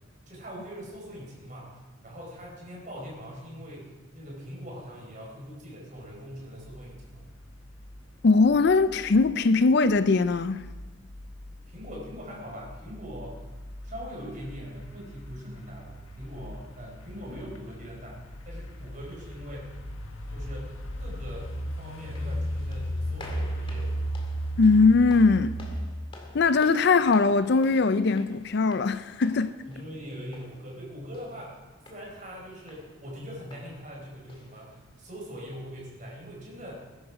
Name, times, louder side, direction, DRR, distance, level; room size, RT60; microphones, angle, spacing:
voice 1, 0.3-7.3 11.7-13.4 13.8-19.8 20.3-24.0 29.6-31.6 31.9-36.9, equal, 40° right, 4.7 m, -42 dB
sound 1, 6.6-25.8, equal, 85° left, 1.4 m, -37 dB
voice 2, 8.2-10.7 24.6-25.6 26.3-29.6, left 4 dB, 55° left, 0.5 m, -21 dB
sound 2, 22.1-35.0, left 2 dB, 25° left, 2.0 m, -52 dB
20.0 x 10.5 x 4.9 m
head